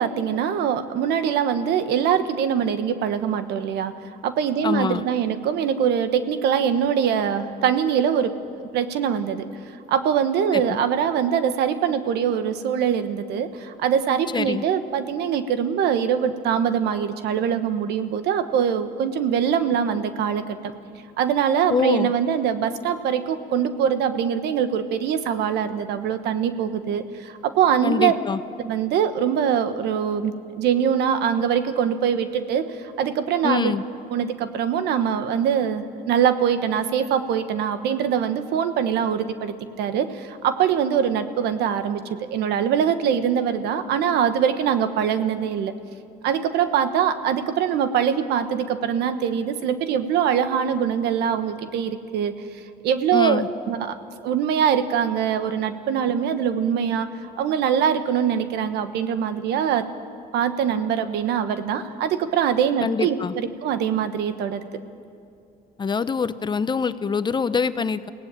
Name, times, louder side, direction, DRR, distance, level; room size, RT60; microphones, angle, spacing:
voice 1, 0.0-3.9 4.2-8.3 8.6-9.5 9.9-20.7 21.2-28.1 28.6-33.7 34.1-45.7 46.2-52.3 52.8-53.9 54.2-57.1 57.4-59.8 60.3-64.7, right 8 dB, 80° right, 10 dB, 1.3 m, -23 dB
voice 2, 4.6-5.0 10.5-10.8 14.3-14.6 21.7-22.1 27.8-28.4 33.4-33.8 53.1-53.5 62.8-63.3 65.8-68.1, left 5 dB, 25° left, 13 dB, 0.7 m, -24 dB
23.0 x 17.5 x 9.0 m, 2.6 s
cardioid pair, 110°, 17 cm